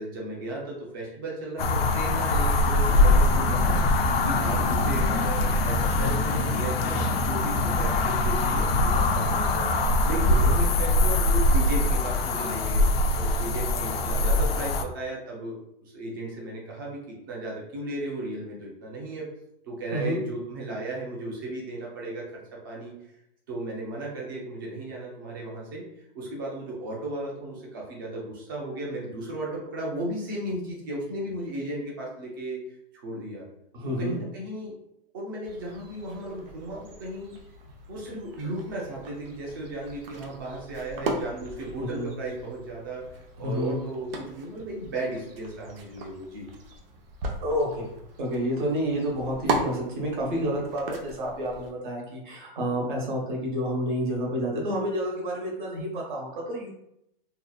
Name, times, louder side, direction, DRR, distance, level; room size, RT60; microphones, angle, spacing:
voice 1, 0.0-19.3 19.7-23.2 23.5-25.8 26.1-32.6 32.9-33.5 34.0-34.8 35.1-37.4 37.9-46.5, right 1 dB, 25° right, -3 dB, 0.4 m, -35 dB
sound 1, 1.6-14.8, left 2 dB, 85° left, 0.5 m, -23 dB
voice 2, 33.7-34.2 41.8-42.1 43.4-43.8 47.4-47.9 48.2-56.7, equal, 55° right, -1 dB, 1.0 m, -29 dB
sound 2, 35.4-51.7, right 3 dB, 70° right, 0.6 m, -38 dB
2.7 x 2.4 x 2.2 m, 0.79 s
hypercardioid pair, 175°, 29 cm